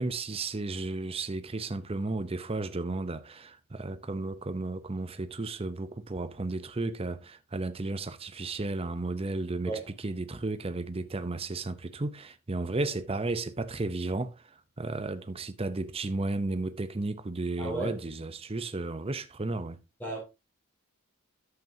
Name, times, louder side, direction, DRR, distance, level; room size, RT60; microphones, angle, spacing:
voice 1, 0.0-14.3 14.8-19.8, right 2 dB, 25° right, 0.7 m, -33 dB
voice 2, 17.6-18.1 20.0-20.2, right 3 dB, 10° left, 2.8 m, -34 dB
11.0 x 7.9 x 2.7 m
head